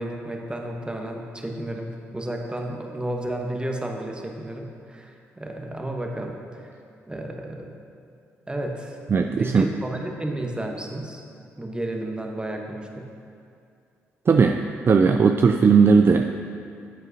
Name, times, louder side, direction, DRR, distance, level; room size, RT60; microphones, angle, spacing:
voice 1, 0.0-6.7 7.1-7.7 8.5-9.0 9.4-11.2 11.6-13.1, right 1 dB, 15° right, 1 dB, 1.1 m, -32 dB
voice 2, 9.1-9.7 14.3-16.3, right 5 dB, 40° right, 5 dB, 0.3 m, -17 dB
9.3 x 7.7 x 2.8 m, 2.4 s
supercardioid pair, 50°, 6 cm